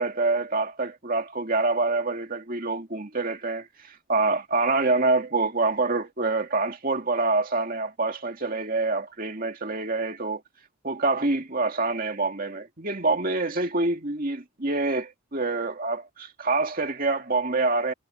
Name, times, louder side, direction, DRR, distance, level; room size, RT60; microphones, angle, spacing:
voice 1, 0.0-10.4 10.8-17.9, right 3 dB, 40° right, 2.3 m, -26 dB
head